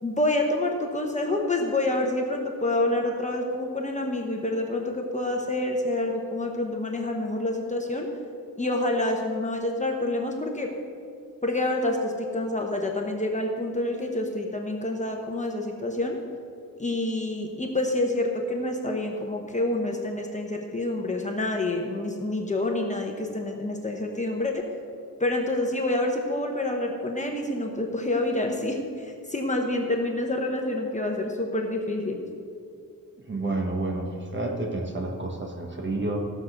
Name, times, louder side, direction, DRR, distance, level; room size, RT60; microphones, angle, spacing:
voice 1, 0.0-8.1 8.6-10.7 11.4-16.2 16.8-24.6 25.2-32.2, left 2 dB, 20° left, 1 dB, 0.9 m, -27 dB
voice 2, 33.3-36.3, right 2 dB, 30° right, 2 dB, 1.3 m, -29 dB
15.0 x 6.1 x 6.6 m, 2.4 s
wide cardioid pair, 165°, 36 cm